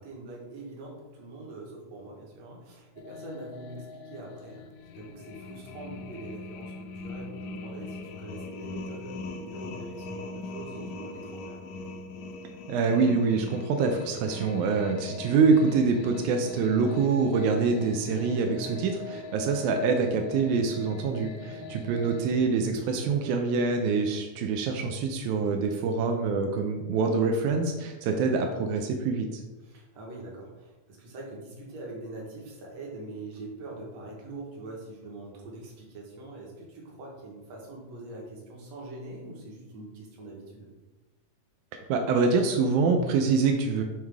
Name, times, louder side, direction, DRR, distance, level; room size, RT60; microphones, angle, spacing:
voice 1, 0.0-4.7 4.9-11.7 21.4-21.7 29.6-40.7, right 2 dB, 65° right, -2 dB, 2.4 m, -43 dB
sound 1, 3.0-22.5, left 3 dB, 85° left, 1.9 m, -42 dB
voice 2, 12.7-29.4 41.7-43.8, right 4 dB, 90° right, 4 dB, 2.1 m, -25 dB
9.1 x 3.2 x 3.5 m, 1.1 s
omnidirectional pair, 3.3 m